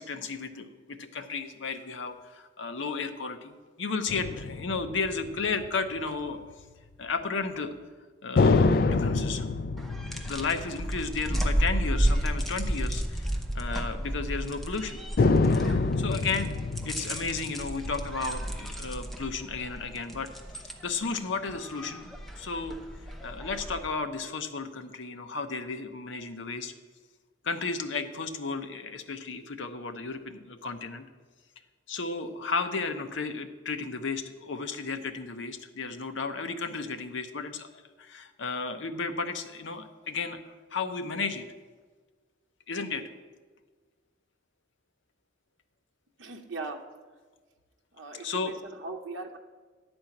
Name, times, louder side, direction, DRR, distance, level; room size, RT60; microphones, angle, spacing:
voice 1, 0.0-6.4 7.0-7.7 8.2-9.5 10.2-15.0 16.0-16.5 16.8-20.3 20.8-22.8 23.0-26.7 27.4-31.0 31.9-37.7 38.0-40.4 40.7-41.5 42.7-43.0 48.2-48.5, left 4 dB, 70° left, 7 dB, 0.8 m, -33 dB
sound 1, 4.1-6.0 8.4-12.1 12.4-12.5 15.2-18.9, left 3 dB, 45° left, 0.4 m, -27 dB
sound 2, 9.8-23.9, right 1 dB, ahead, 0.7 m, -32 dB
voice 2, 46.2-46.8 47.9-49.4, right 3 dB, 70° right, 2 dB, 0.8 m, -39 dB
10.5 x 4.4 x 7.7 m, 1.4 s
head